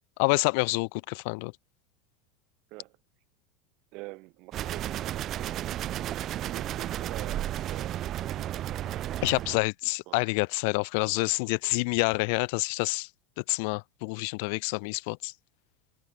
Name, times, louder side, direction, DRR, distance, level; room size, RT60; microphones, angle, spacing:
voice 1, 0.2-1.5 9.2-13.1 13.4-15.3, left 32 dB, 60° left, 0.3 m, -28 dB
voice 2, 3.9-5.8 6.3-9.5 9.8-10.3, right 24 dB, 50° right, 6.6 m, -47 dB
sound 1, 4.5-9.6, right 12 dB, 35° right, 1.3 m, -33 dB
supercardioid pair, 155°, 0 cm